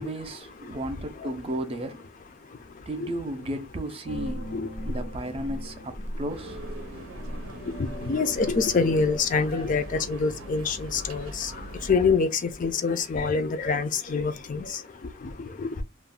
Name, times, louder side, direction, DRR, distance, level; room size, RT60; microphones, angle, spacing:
voice 1, 0.0-2.0 2.9-4.5 4.8-6.6, right 1 dB, 30° right, 0.4 m, -34 dB
sound 1, 4.1-9.2, equal, 90° left, 0.8 m, -37 dB
sound 2, 6.3-11.9, right 1 dB, 90° right, 0.7 m, -41 dB
voice 2, 8.1-11.5 11.9-14.7 15.2-15.8, left 4 dB, 40° left, 0.4 m, -26 dB
2.4 x 2.1 x 3.6 m
head